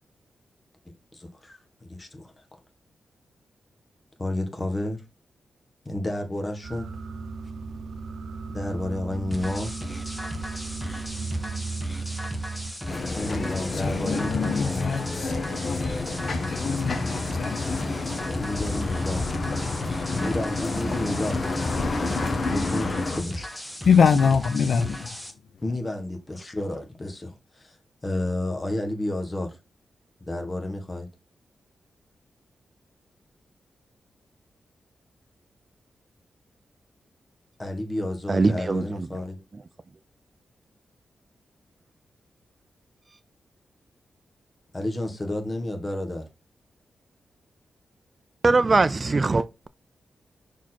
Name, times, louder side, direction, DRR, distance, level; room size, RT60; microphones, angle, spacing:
voice 1, 1.1-1.6 1.9-2.3 4.2-5.0 5.8-6.9 8.5-9.7 13.1-15.0 18.4-19.2 20.1-21.9 22.4-23.5 25.6-27.8 28.0-29.6 30.2-31.1 37.6-39.4 44.7-46.3, left 1 dB, 25° left, 1.6 m, -31 dB
sound 1, 6.6-12.7, right 4 dB, 80° right, 0.9 m, -35 dB
sound 2, 9.3-25.3, equal, 5° left, 1.5 m, -37 dB
sound 3, 12.9-23.2, left 3 dB, 45° left, 1.5 m, -29 dB
voice 2, 13.7-15.3 15.6-16.1 16.5-17.7 23.8-25.2, left 6 dB, 65° left, 0.5 m, -24 dB
voice 3, 38.3-39.1 48.4-49.5, right 3 dB, 35° right, 0.4 m, -21 dB
5.9 x 4.5 x 4.3 m
wide cardioid pair, 100°, 0 cm